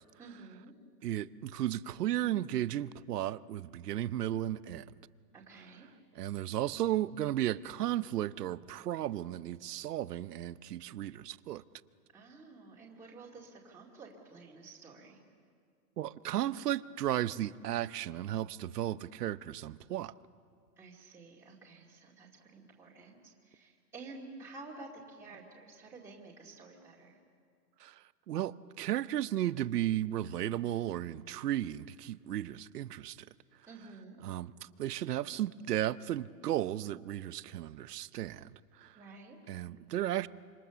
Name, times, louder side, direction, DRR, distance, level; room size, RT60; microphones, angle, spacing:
voice 1, 0.2-0.7 5.3-5.9 12.1-15.2 20.8-23.2 23.4-27.2 33.7-34.2 38.9-39.4, right 3 dB, 5° right, 2.3 m, -51 dB
voice 2, 1.0-4.9 6.1-11.6 16.0-20.1 27.8-33.2 34.2-38.5 38.8-39.0 39.5-40.3, right 12 dB, 70° right, 0.8 m, -34 dB
26.5 x 25.5 x 7.0 m
hypercardioid pair, 150°, 48 cm